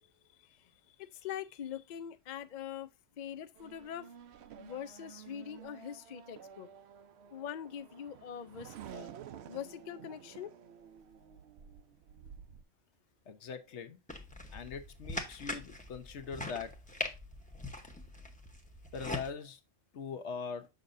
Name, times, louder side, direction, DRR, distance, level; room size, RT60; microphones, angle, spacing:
voice 1, 0.0-2.9 3.2-4.1 4.6-6.7 7.3-9.1 9.5-10.5, left 9 dB, 75° left, 0.4 m, -43 dB
Race car auto racing / Accelerating revving vroom, 3.6-12.6, right 9 dB, 60° right, 0.7 m, -52 dB
voice 2, 13.3-14.0 14.5-16.8 18.9-19.6 19.9-20.7, left 5 dB, 60° left, 1.1 m, -41 dB
sound 1, 14.1-19.3, left 1 dB, 5° left, 0.8 m, -42 dB
6.7 x 6.6 x 2.6 m
omnidirectional pair, 1.4 m